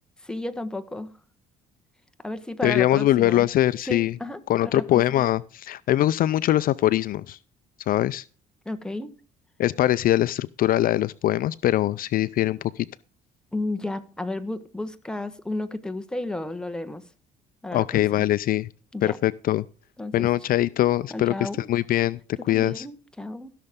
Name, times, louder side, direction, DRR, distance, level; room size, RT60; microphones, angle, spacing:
voice 1, 0.2-1.1 2.2-3.5 3.9-5.3 8.6-9.1 13.5-17.0 17.6-18.2 18.9-19.2 20.0-20.3 21.1-21.7 22.5-23.5, left 2 dB, 5° left, 1.2 m, -33 dB
voice 2, 2.6-4.1 4.5-7.4 7.9-8.2 9.6-12.9 17.7-18.7 19.0-19.6 20.1-22.2 22.5-22.8, left 14 dB, 55° left, 0.4 m, -22 dB
16.0 x 6.6 x 3.6 m
cardioid pair, 110°, 17 cm